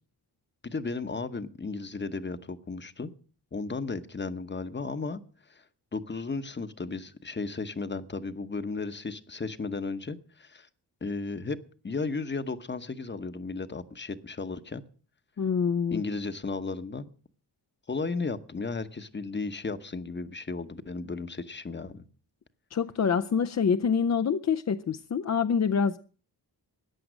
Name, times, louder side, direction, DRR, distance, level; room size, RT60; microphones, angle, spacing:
voice 1, 0.6-3.1 3.5-5.2 5.5-5.6 5.9-10.7 11.0-11.6 11.8-14.8 15.9-17.1 17.9-22.0, left 4 dB, 25° left, 0.9 m, -34 dB
voice 2, 15.4-16.0 22.7-26.0, left 6 dB, 40° left, 0.5 m, -26 dB
14.5 x 10.0 x 6.2 m
wide cardioid pair, 115°, 40 cm